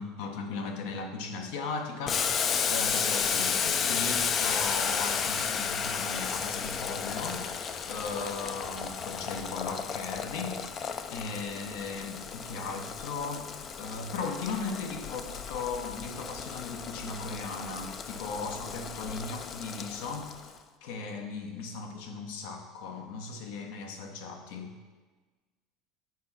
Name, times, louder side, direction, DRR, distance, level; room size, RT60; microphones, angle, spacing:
voice 1, 0.0-24.7, left 4 dB, 75° left, 4 dB, 1.0 m, -37 dB
Boiling, 2.1-20.5, left 6 dB, 35° left, 0.4 m, -33 dB
6.0 x 4.4 x 6.0 m, 1.3 s
supercardioid pair, 115°, 0 cm